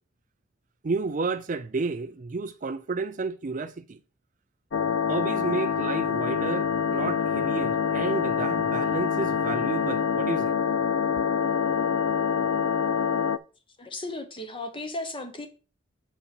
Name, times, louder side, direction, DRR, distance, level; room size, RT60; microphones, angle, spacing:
voice 1, 0.8-4.0 5.1-10.6, right 4 dB, 40° right, 0.4 m, -31 dB
sound 1, 4.7-13.4, left 7 dB, 65° left, 0.5 m, -26 dB
voice 2, 13.8-15.5, left 2 dB, 25° left, 1.2 m, -35 dB
8.0 x 4.6 x 5.4 m
head